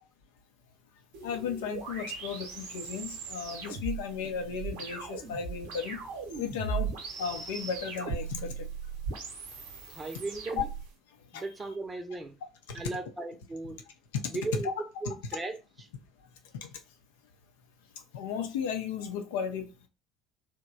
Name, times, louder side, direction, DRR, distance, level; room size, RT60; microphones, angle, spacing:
sound 1, 1.1-10.9, right 5 dB, 65° right, 0.8 m, -38 dB
voice 1, 1.2-6.0 6.4-6.9 7.2-8.7 11.3-11.4 12.7-12.8 14.1-14.2 14.6-14.7 15.1-15.2 18.1-19.6, left 7 dB, 70° left, 0.6 m, -35 dB
voice 2, 9.9-10.7 11.3-12.4 12.7-13.8 14.3-14.7 15.0-15.6, right 3 dB, 20° right, 0.7 m, -36 dB
3.1 x 2.2 x 3.8 m
figure-of-eight pair, 60°, 0 cm